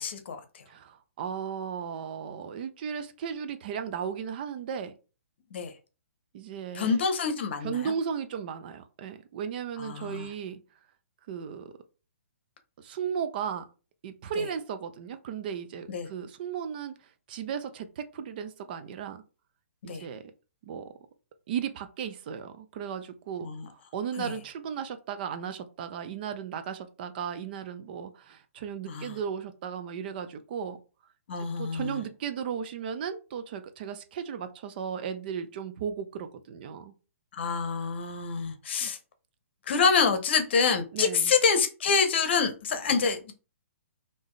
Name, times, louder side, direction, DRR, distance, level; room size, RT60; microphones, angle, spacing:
voice 1, 0.0-0.6 5.5-5.7 6.7-7.9 9.8-10.3 14.4-14.5 15.9-16.1 19.9-20.1 23.4-23.7 24.2-24.4 28.9-29.2 31.3-32.0 37.3-39.0 39.7-43.3, left 5 dB, 50° left, 8 dB, 0.8 m, -27 dB
voice 2, 0.7-4.9 6.3-7.0 7.6-10.6 11.3-11.7 12.8-13.6 14.0-16.9 17.3-19.2 19.8-20.2 20.6-20.9 21.5-23.5 23.9-30.8 31.6-36.9 38.8-38.9 40.9-41.3, right 7 dB, 40° right, 9 dB, 0.5 m, -35 dB
3.5 x 2.7 x 3.2 m, 0.33 s
figure-of-eight pair, 125°, 8 cm